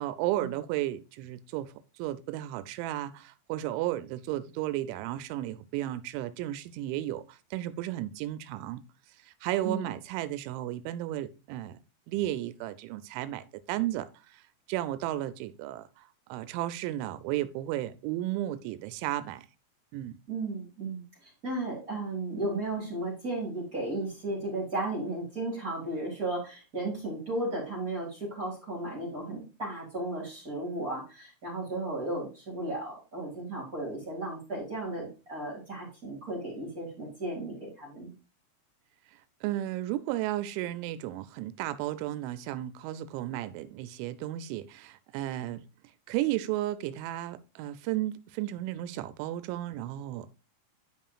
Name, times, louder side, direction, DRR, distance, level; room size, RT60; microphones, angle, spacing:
voice 1, 0.0-8.8 9.2-11.8 12.1-14.4 14.7-19.5 19.9-20.2 39.1-45.6 46.1-50.4, right 14 dB, 90° right, 2.9 m, -34 dB
voice 2, 20.3-38.1, right 2 dB, 35° right, 1.5 m, -35 dB
10.5 x 5.6 x 2.3 m
omnidirectional pair, 5.2 m